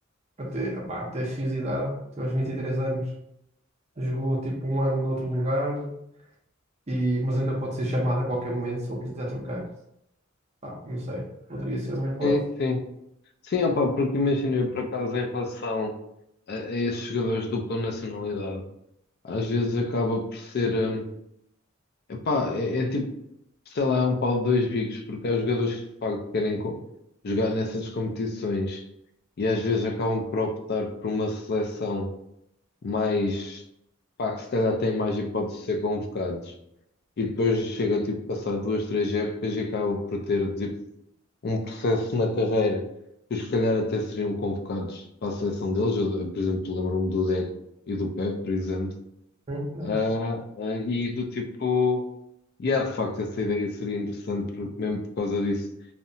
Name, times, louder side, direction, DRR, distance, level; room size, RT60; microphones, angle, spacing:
voice 1, 0.4-3.1 4.0-6.0 6.9-9.6 10.6-12.4 49.5-50.0, equal, 30° right, -2 dB, 0.5 m, -28 dB
voice 2, 12.2-12.8 13.5-15.9 16.5-18.6 19.2-21.1 22.1-23.2 23.7-26.8 27.2-28.8 29.4-32.1 32.8-33.6 34.2-36.5 37.2-40.8 41.4-42.8 43.3-47.5 47.9-48.9 49.8-52.0 52.6-55.7, left 3 dB, 50° left, 3 dB, 0.4 m, -27 dB
2.7 x 2.1 x 2.6 m, 0.80 s
head